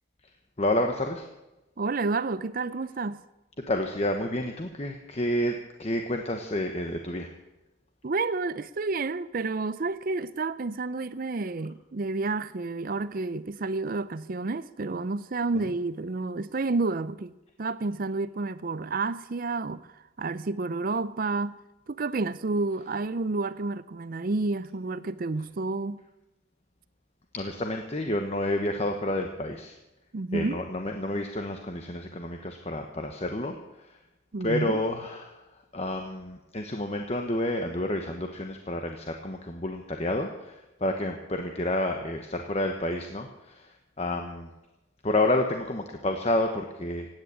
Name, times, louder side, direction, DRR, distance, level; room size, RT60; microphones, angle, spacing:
voice 1, 0.6-1.3 3.7-7.3 27.3-29.7 30.3-34.0 34.4-35.4 35.7-44.5 45.0-47.1, left 1 dB, 30° left, 1.1 m, -29 dB
voice 2, 1.8-3.2 8.0-17.3 17.6-21.6 21.9-26.0 30.1-30.6 34.3-34.8, right 3 dB, 45° right, 0.5 m, -30 dB
16.5 x 9.6 x 8.8 m
head